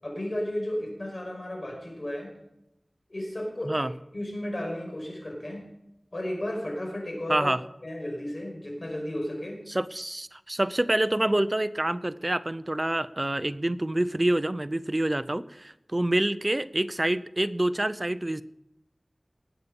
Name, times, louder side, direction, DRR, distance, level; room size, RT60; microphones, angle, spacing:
voice 1, 0.0-2.3 3.1-3.9 4.1-5.6 6.1-7.5 7.8-9.6, left 1 dB, 55° left, 0 dB, 5.5 m, -33 dB
voice 2, 7.3-7.6 9.7-18.4, right 1 dB, 35° right, 14 dB, 0.6 m, -27 dB
19.5 x 8.3 x 5.4 m, 0.85 s
wide cardioid pair, 50°, 0 cm